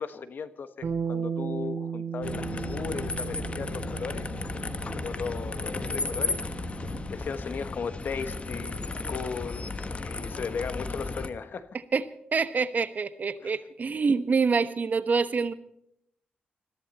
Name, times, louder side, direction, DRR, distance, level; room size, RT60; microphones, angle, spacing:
voice 1, 0.0-4.3 5.0-6.4 7.1-9.7 10.0-11.7 13.4-13.5, left 5 dB, 65° left, 1.2 m, -36 dB
Bass guitar, 0.8-7.1, right 7 dB, 65° right, 2.6 m, -36 dB
sound 1, 2.2-11.3, left 3 dB, 35° left, 1.3 m, -34 dB
voice 2, 12.3-15.5, right 5 dB, 50° right, 1.1 m, -26 dB
21.5 x 14.5 x 4.2 m
cardioid pair, 85°, 4 cm